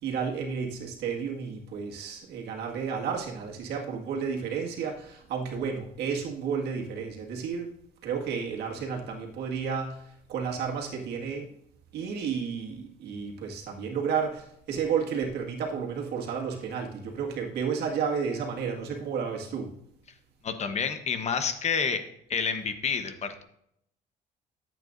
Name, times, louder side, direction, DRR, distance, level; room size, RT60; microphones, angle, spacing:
voice 1, 0.0-7.7 8.0-11.5 11.9-19.7, right 6 dB, 80° right, 0 dB, 1.9 m, -32 dB
voice 2, 20.4-22.0 22.3-23.4, left 6 dB, 40° left, 9 dB, 1.0 m, -29 dB
13.5 x 8.0 x 2.6 m, 0.73 s
cardioid pair, 110°, 17 cm